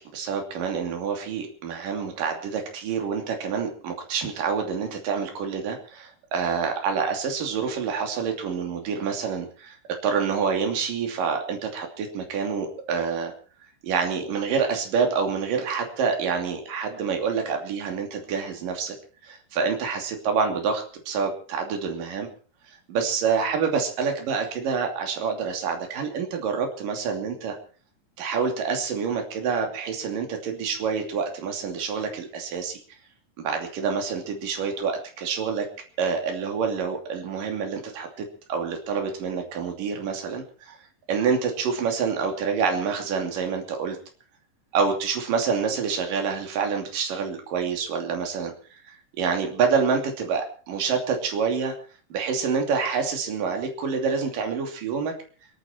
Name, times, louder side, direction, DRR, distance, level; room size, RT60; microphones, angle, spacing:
voice 1, 0.0-9.8 10.0-13.3 13.8-19.0 19.2-22.3 22.7-27.6 28.2-32.8 33.4-35.7 36.0-40.8 41.1-44.0 44.7-51.7 52.1-55.1, right 5 dB, 65° right, 4 dB, 4.3 m, -27 dB
28.0 x 9.7 x 4.4 m, 0.40 s
omnidirectional pair, 4.2 m